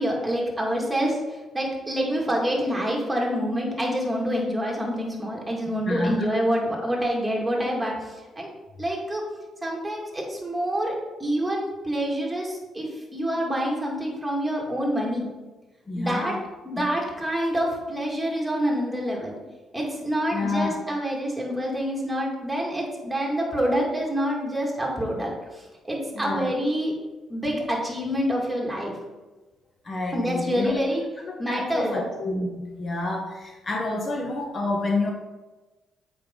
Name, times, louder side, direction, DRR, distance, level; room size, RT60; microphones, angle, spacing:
voice 1, 0.0-8.5 8.8-9.2 9.6-10.9 11.2-15.3 15.9-16.4 16.6-19.3 19.7-26.9 27.3-29.0 30.1-31.0 31.4-32.0, equal, 10° right, -2 dB, 2.1 m, -27 dB
voice 2, 5.9-6.3 15.9-16.4 16.8-16.9 20.3-20.8 26.2-26.5 29.8-30.9 31.5-35.1, left 2 dB, 35° left, 2 dB, 1.0 m, -28 dB
7.8 x 5.2 x 3.8 m, 1.1 s
cardioid pair, 90°, 0 cm